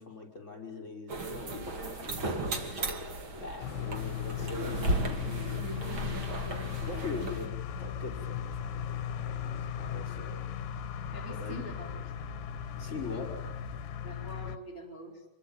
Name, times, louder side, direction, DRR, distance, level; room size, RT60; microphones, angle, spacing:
voice 1, 0.0-2.8 3.3-4.8 5.7-6.2 6.8-10.5 11.3-11.6 12.8-13.3, left 4 dB, 15° left, 1 dB, 5.5 m, -42 dB
sound 1, 1.1-7.5, right 2 dB, 35° right, 2.8 m, -35 dB
sound 2, 3.6-14.6, left 10 dB, 65° left, 2.4 m, -37 dB
voice 2, 5.2-5.7 11.1-12.0 12.8-13.3 14.0-15.3, right 1 dB, 5° right, 3 dB, 3.5 m, -46 dB
sound 3, 5.5-13.8, right 5 dB, 75° right, 3.1 m, -49 dB
27.0 x 23.0 x 9.0 m, 1.2 s
omnidirectional pair, 5.0 m